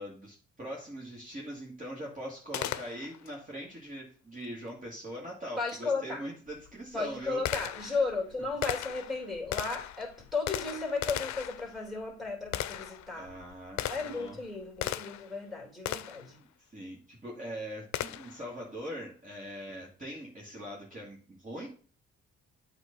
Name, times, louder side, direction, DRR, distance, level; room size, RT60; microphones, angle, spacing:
voice 1, 0.0-7.4 7.7-8.0 9.2-9.3 13.1-14.4 16.6-21.7, equal, 25° right, -3 dB, 2.1 m, -42 dB
Gunshot gunfire, 2.5-3.3 5.7-5.8 6.5-15.4 15.9-16.3 17.9-18.5, left 13 dB, 65° left, 0.5 m, -37 dB
voice 2, 5.6-6.2 6.9-13.3 13.9-16.4, left 3 dB, ahead, 0 dB, 3.0 m, -34 dB
8.2 x 3.0 x 5.2 m, 0.42 s
cardioid pair, 90°, 30 cm